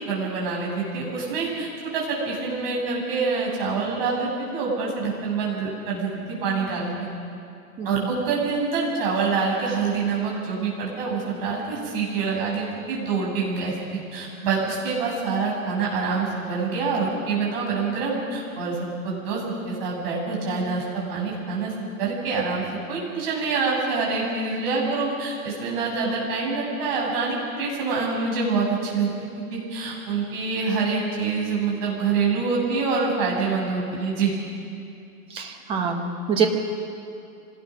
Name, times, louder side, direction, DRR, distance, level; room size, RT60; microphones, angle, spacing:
voice 1, 0.0-6.1 6.4-6.9 7.8-13.8 14.1-19.4 19.7-21.7 22.0-22.6 22.9-29.1 29.4-34.3, right 4 dB, 40° right, -3 dB, 7.5 m, -26 dB
voice 2, 7.8-8.1 35.3-36.5, right 6 dB, 10° right, 4 dB, 1.1 m, -25 dB
25.5 x 18.5 x 6.3 m, 2.5 s
hypercardioid pair, 165°, 45 cm